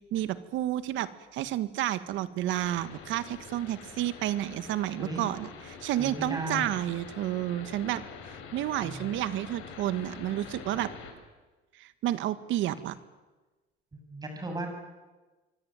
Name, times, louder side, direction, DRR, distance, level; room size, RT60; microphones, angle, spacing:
voice 1, 0.1-10.9 11.8-13.0, right 13 dB, 75° right, 12 dB, 1.9 m, -31 dB
sound 1, 2.5-11.1, left 6 dB, 85° left, 6.9 m, -46 dB
voice 2, 6.0-6.7 8.8-8.9 13.9-14.7, right 1 dB, 20° right, 4 dB, 7.7 m, -35 dB
26.0 x 24.0 x 9.2 m, 1.2 s
cardioid pair, 135°, 20 cm